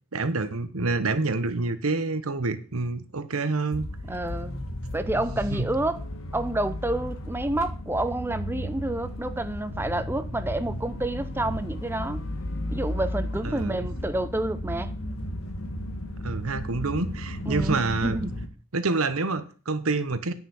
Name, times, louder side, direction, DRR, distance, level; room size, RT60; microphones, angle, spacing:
voice 1, 0.1-3.9 5.1-5.2 5.5-5.7 13.4-13.9 16.2-18.3 18.7-20.3, right 3 dB, 90° right, 1.1 m, -27 dB
sound 1, 3.7-18.5, left 1 dB, 80° left, 1.5 m, -34 dB
voice 2, 4.1-4.6 4.9-6.0 6.3-12.2 12.7-14.9 17.5-18.4, right 1 dB, 10° right, 0.7 m, -29 dB
9.6 x 5.7 x 7.1 m
head